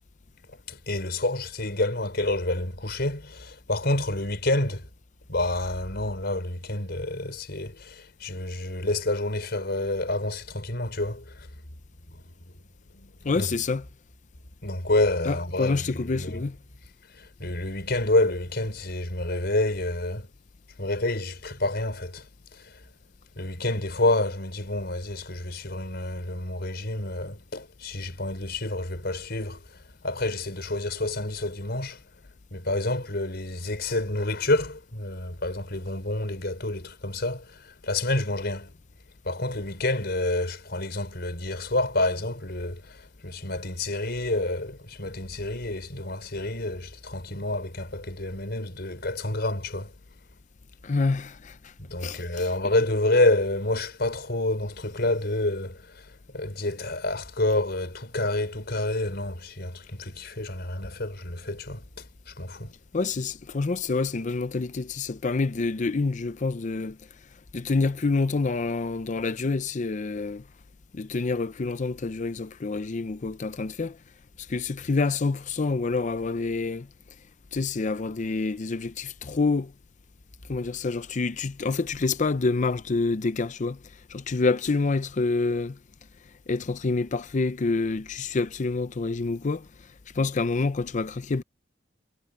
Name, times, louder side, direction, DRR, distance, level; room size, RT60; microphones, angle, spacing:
voice 1, 0.7-4.9 5.3-11.5 12.1-12.5 12.9-13.5 14.6-16.5 17.1-20.3 20.8-22.3 22.5-22.8 23.4-29.7 30.0-32.0 32.5-38.7 39.3-49.9 51.8-62.7, left 2 dB, 60° left, 5.2 m, -28 dB
voice 2, 13.2-13.9 15.3-16.6 50.8-51.7 52.0-52.5 62.9-67.0 67.5-70.4 70.9-74.0 74.4-76.9 77.5-79.7 80.5-85.8 86.5-89.9 90.1-91.4, left 3 dB, 40° left, 0.5 m, -27 dB
head